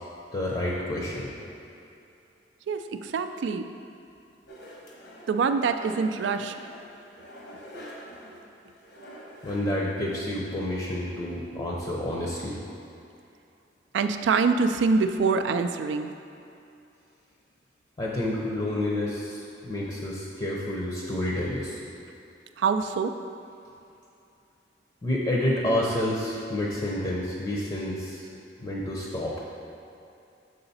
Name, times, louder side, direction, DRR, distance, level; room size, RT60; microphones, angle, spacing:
voice 1, 0.3-1.3 9.4-12.6 18.0-21.8 25.0-28.3 28.6-29.4, left 1 dB, 30° left, -4 dB, 0.6 m, -29 dB
voice 2, 2.7-3.7 5.3-6.5 13.9-16.1 22.6-23.1, right 4 dB, 80° right, 8 dB, 0.3 m, -25 dB
sound 1, 4.5-10.9, equal, 65° left, 1.0 m, -46 dB
6.8 x 3.9 x 4.1 m, 2.7 s
head